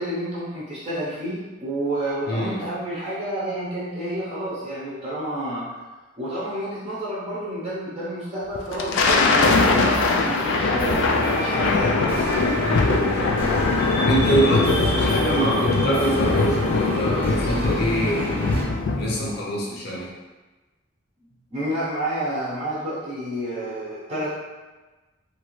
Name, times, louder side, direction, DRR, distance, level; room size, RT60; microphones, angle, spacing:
voice 1, 0.0-5.7 6.2-12.0 19.7-19.8 21.5-24.4, right 1 dB, 30° right, -9 dB, 0.7 m, -29 dB
voice 2, 2.3-2.6 12.6-13.4 14.0-18.5 19.0-20.1, right 1 dB, 55° left, -4 dB, 0.7 m, -25 dB
Thunder, 8.6-19.3, left 3 dB, 70° left, 0.3 m, -22 dB
sound 1, 9.1-18.6, equal, 10° left, 0.7 m, -30 dB
2.9 x 2.5 x 3.1 m, 1.2 s
head